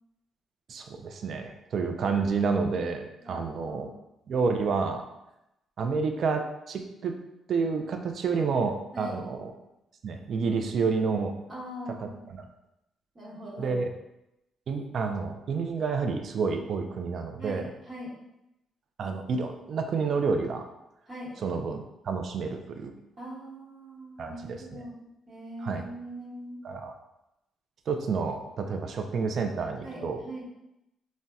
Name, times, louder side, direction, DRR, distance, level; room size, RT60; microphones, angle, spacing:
voice 1, 0.7-3.9 4.3-5.0 5.8-7.2 7.5-9.5 10.0-11.3 12.3-12.4 13.6-13.8 14.7-17.6 19.0-20.7 21.4-22.9 24.2-24.8 25.6-25.9 26.6-26.9 27.9-30.2, right 5 dB, 60° right, 5 dB, 0.3 m, -29 dB
voice 2, 3.2-3.9 8.9-9.2 11.5-12.2 13.1-13.8 17.4-18.2 21.1-21.4 23.2-25.0 25.3-26.6 29.8-30.4, right 1 dB, 35° right, -8 dB, 1.1 m, -41 dB
4.0 x 2.1 x 2.3 m, 0.89 s
cardioid pair, 90°, 0 cm